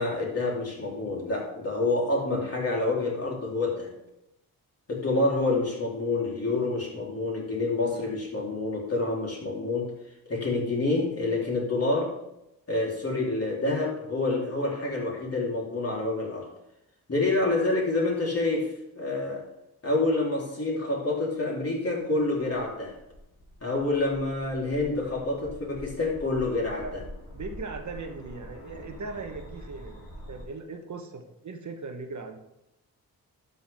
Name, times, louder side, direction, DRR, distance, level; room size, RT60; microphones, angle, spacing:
voice 1, 0.0-3.9 4.9-9.9 10.3-12.1 12.7-16.5 17.1-18.7 19.0-19.5 19.8-23.0 23.6-27.0, left 2 dB, 40° left, -3 dB, 3.5 m, -27 dB
sound 1, 22.7-30.4, left 1 dB, 65° left, 3.4 m, -45 dB
voice 2, 27.3-32.4, right 4 dB, 50° right, 5 dB, 1.1 m, -39 dB
12.0 x 6.9 x 3.6 m, 0.86 s
cardioid pair, 90°, 37 cm